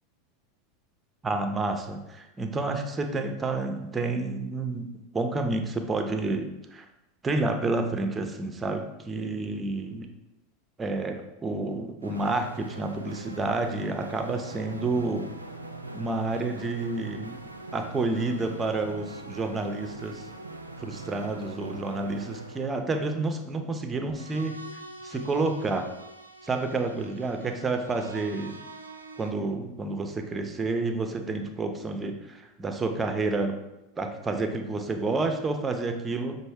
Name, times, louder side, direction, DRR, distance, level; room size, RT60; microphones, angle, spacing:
voice 1, 1.2-4.8 5.1-6.9 7.2-10.1 10.8-15.3 15.9-17.4 17.7-20.2 20.8-24.6 25.0-25.9 26.4-28.6 29.2-33.6 34.0-36.4, right 3 dB, 15° right, 5 dB, 0.5 m, -29 dB
sound 1, 12.0-29.3, right 2 dB, 85° right, 0.3 m, -43 dB
5.9 x 2.0 x 3.4 m, 0.91 s
figure-of-eight pair, 85°, 0 cm